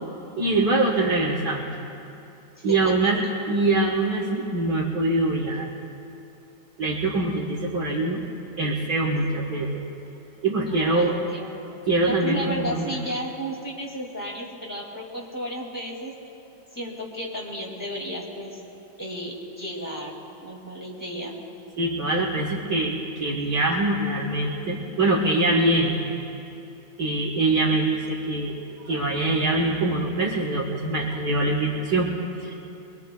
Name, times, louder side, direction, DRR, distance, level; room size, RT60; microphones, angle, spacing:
voice 1, 0.4-1.7 2.6-5.7 6.8-8.2 8.6-9.7 10.4-11.2 11.9-12.9 21.8-26.1 27.0-28.5 28.8-32.1 32.4-32.5, right 2 dB, 55° right, -5 dB, 1.9 m, -23 dB
voice 2, 2.6-2.9 10.6-11.5 12.0-16.1 16.7-18.6 19.0-20.1 20.4-21.4, equal, 10° left, -2 dB, 2.3 m, -33 dB
23.5 x 23.0 x 2.3 m, 2.7 s
omnidirectional pair, 2.1 m